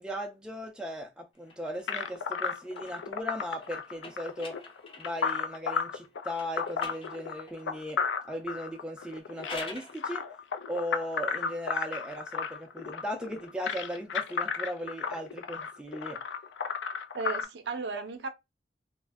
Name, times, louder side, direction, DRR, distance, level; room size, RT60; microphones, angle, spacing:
voice 1, 0.0-4.6 5.0-8.0 8.2-10.2 10.7-16.2, equal, 5° right, 0.3 m, -37 dB
sound 1, 1.4-5.5 6.3-7.7 9.1-10.0, left 3 dB, 30° left, 0.6 m, -46 dB
sound 2, 1.9-17.4, left 6 dB, 70° left, 0.4 m, -34 dB
voice 2, 17.1-18.3, right 4 dB, 60° right, 0.5 m, -35 dB
2.4 x 2.1 x 3.3 m
head